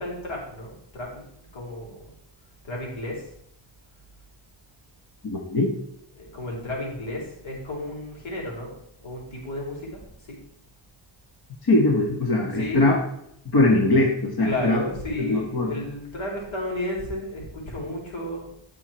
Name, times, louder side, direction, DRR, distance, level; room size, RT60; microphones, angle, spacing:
voice 1, 0.0-2.0 2.6-3.3 6.2-8.8 9.0-10.0 10.3-10.4 12.4-12.9 14.4-18.4, left 1 dB, 85° left, -2 dB, 4.9 m, -32 dB
voice 2, 5.2-5.7 11.6-13.0 13.5-14.8 15.2-15.8, left 2 dB, 50° left, 0 dB, 1.9 m, -21 dB
16.5 x 6.3 x 4.6 m, 0.74 s
cardioid pair, 100°, 46 cm